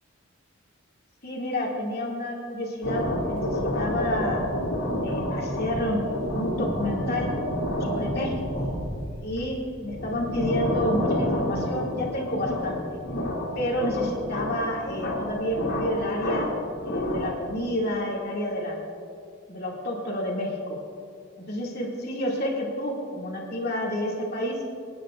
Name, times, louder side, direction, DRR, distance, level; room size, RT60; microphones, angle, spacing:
voice 1, 1.2-4.5 5.0-6.0 6.3-7.3 7.8-8.6 9.2-13.0 13.5-16.5 16.8-18.8 19.5-20.8 21.5-24.6, left 1 dB, 50° left, -3 dB, 2.4 m, -29 dB
sound 1, 2.8-17.5, left 1 dB, 80° left, 2.6 m, -29 dB
26.5 x 10.0 x 2.5 m, 2.3 s
head